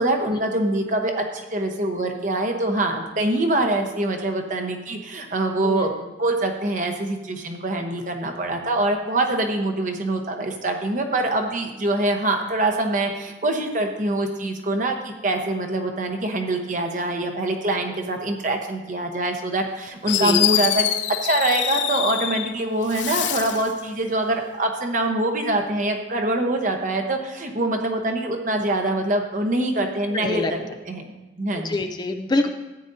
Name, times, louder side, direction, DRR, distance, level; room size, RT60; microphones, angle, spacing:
voice 1, 0.0-5.9 6.2-20.9 21.2-31.1 31.4-31.7, right 2 dB, 45° right, 3 dB, 1.0 m, -24 dB
Fireworks, 19.7-19.8 20.1-22.5 22.9-23.7, left 12 dB, 80° left, 0.5 m, -24 dB
voice 2, 30.1-30.5 31.6-32.5, left 2 dB, 25° left, 6 dB, 0.4 m, -25 dB
13.5 x 8.9 x 2.7 m, 1.1 s
head